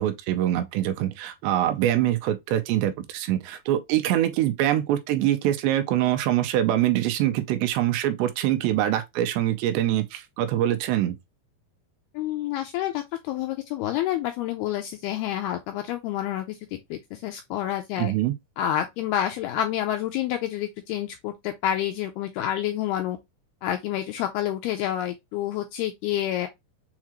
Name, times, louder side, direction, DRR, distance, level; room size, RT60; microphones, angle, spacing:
voice 1, 0.0-11.2 18.0-18.3, right 12 dB, 85° right, 2.8 m, -24 dB
voice 2, 12.1-16.6 16.9-18.1 18.6-23.2 23.6-26.5, left 12 dB, 85° left, 2.2 m, -28 dB
7.2 x 2.4 x 2.9 m
omnidirectional pair, 5.0 m